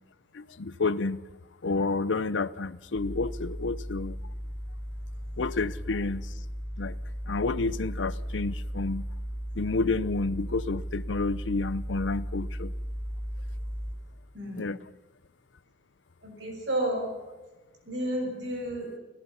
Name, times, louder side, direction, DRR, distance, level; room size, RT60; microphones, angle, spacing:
voice 1, 0.3-1.2 1.6-4.2 5.4-6.3 6.8-7.0 7.3-9.1 9.6-12.7 14.6-14.8, left 3 dB, 85° left, 17 dB, 0.7 m, -30 dB
sound 1, 2.9-13.9, equal, 30° left, 4.3 m, -36 dB
voice 2, 14.3-14.7 16.2-17.1 17.8-18.9, right 1 dB, 75° right, 2 dB, 6.5 m, -31 dB
29.5 x 16.5 x 5.7 m, 1.2 s
head